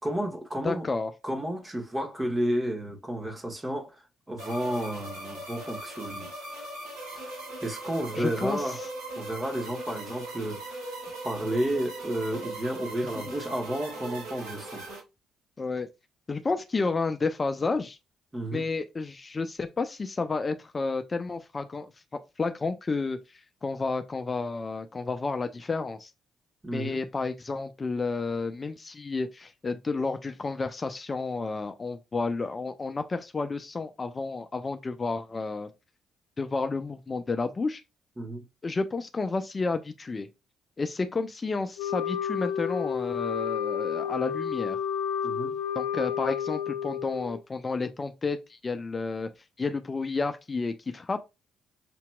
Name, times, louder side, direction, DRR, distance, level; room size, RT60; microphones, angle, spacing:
voice 1, 0.0-0.9 1.2-4.0 4.3-6.3 7.1-7.3 7.6-8.8 9.2-10.9 11.2-14.8 18.3-18.6 26.6-27.0 38.2-38.4 45.2-45.6, right 1 dB, 20° right, 1.4 m, -31 dB
voice 2, 0.6-1.1 8.1-8.9 13.1-13.2 15.6-15.9 16.3-18.0 18.5-26.1 26.7-35.7 36.4-37.8 38.6-40.3 40.8-44.8 45.7-49.3 49.6-51.2, left 3 dB, 35° left, 0.5 m, -31 dB
sound 1, 4.4-15.0, right 2 dB, 90° right, 2.2 m, -39 dB
Wind instrument woodwind instrument, 41.8-47.4, left 8 dB, 80° left, 0.6 m, -31 dB
6.0 x 2.8 x 2.2 m
hypercardioid pair, 55°, 0 cm